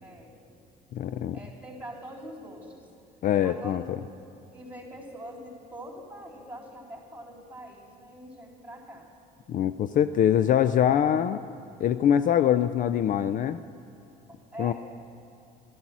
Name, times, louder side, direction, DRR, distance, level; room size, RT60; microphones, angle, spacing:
voice 1, 0.0-0.3 1.3-2.9 3.4-3.9 4.5-9.1 14.5-14.7, right 1 dB, 10° right, -3 dB, 3.7 m, -43 dB
voice 2, 0.9-1.4 3.2-3.8 9.5-11.4 11.8-13.6 14.6-14.7, left 10 dB, 50° left, 12 dB, 0.4 m, -23 dB
13.0 x 12.0 x 6.1 m, 2.7 s
cardioid pair, 110°, 17 cm